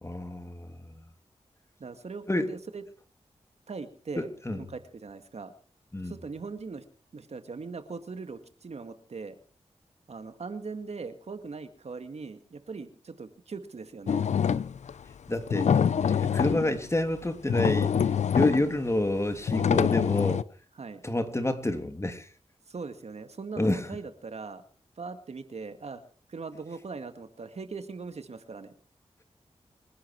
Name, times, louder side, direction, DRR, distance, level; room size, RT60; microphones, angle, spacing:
voice 1, 0.0-1.0 2.3-2.5 4.2-4.6 5.9-6.1 15.3-17.9 18.3-20.4 21.0-22.3 23.6-23.9, left 1 dB, 25° left, 2.9 m, -29 dB
voice 2, 1.8-2.8 3.7-5.5 6.0-6.8 7.1-9.4 10.1-14.3 20.8-21.0 22.7-24.6 25.0-26.0 26.3-28.7, right 4 dB, 65° right, 2.0 m, -40 dB
sound 1, 14.1-14.9 15.5-16.8 17.2-17.3 17.5-18.8 19.5-20.4, left 7 dB, 85° left, 0.7 m, -25 dB
26.0 x 11.0 x 4.7 m
cardioid pair, 50°, 12 cm